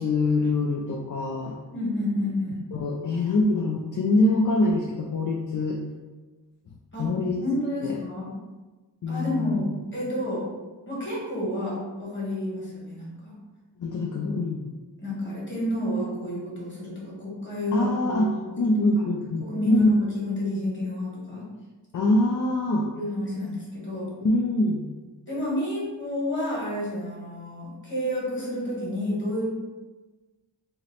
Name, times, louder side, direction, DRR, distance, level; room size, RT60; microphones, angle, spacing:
voice 1, 0.0-1.6 2.7-5.8 7.0-7.4 7.8-8.0 9.0-9.7 13.8-14.7 17.7-19.9 21.9-22.9 24.2-24.9, left 2 dB, 45° left, 0 dB, 0.4 m, -24 dB
voice 2, 1.7-2.6 6.9-7.1 7.4-8.3 9.1-10.5 10.9-13.3 14.0-14.1 15.0-18.3 19.4-21.5 22.9-24.1 25.3-29.5, left 1 dB, 25° left, -6 dB, 1.5 m, -30 dB
2.8 x 2.0 x 4.0 m, 1.2 s
wide cardioid pair, 50°, 43 cm